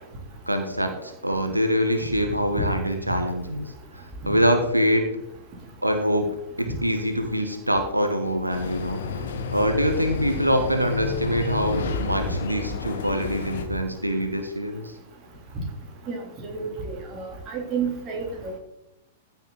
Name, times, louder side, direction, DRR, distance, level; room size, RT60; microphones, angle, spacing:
voice 1, 0.5-3.7 4.3-5.1 5.8-6.3 6.6-9.0 9.5-14.9, equal, 85° right, 5 dB, 1.2 m, -24 dB
sound 1, 8.5-13.7, left 5 dB, 60° left, 1.4 m, -31 dB
voice 2, 16.5-18.2, right 6 dB, 30° right, 0 dB, 3.3 m, -30 dB
14.5 x 7.1 x 4.0 m, 0.89 s
figure-of-eight pair, 100°, 0 cm